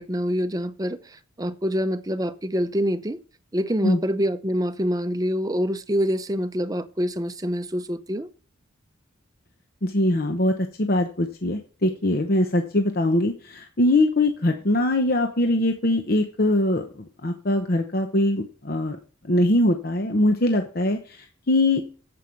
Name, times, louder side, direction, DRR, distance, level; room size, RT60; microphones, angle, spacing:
voice 1, 0.0-3.2 3.5-8.3, equal, 20° right, 0.6 m, -26 dB
voice 2, 9.8-10.5 10.8-16.9 17.2-19.0 19.3-21.8, left 1 dB, 45° left, 0.9 m, -22 dB
9.1 x 7.7 x 4.5 m
head